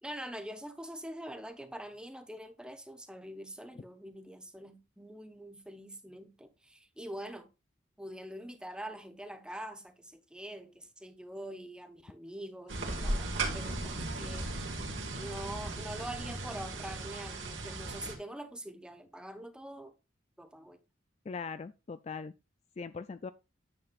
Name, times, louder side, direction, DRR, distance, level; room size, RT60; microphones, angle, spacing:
voice 1, 0.0-7.5 8.0-14.5 15.1-19.9 20.4-20.8, right 1 dB, 5° right, 0.9 m, -44 dB
sound 1, 12.7-18.2, right 2 dB, 75° right, 2.2 m, -36 dB
voice 2, 21.3-22.3 22.8-23.3, left 5 dB, 35° left, 0.3 m, -40 dB
9.7 x 7.8 x 2.5 m
head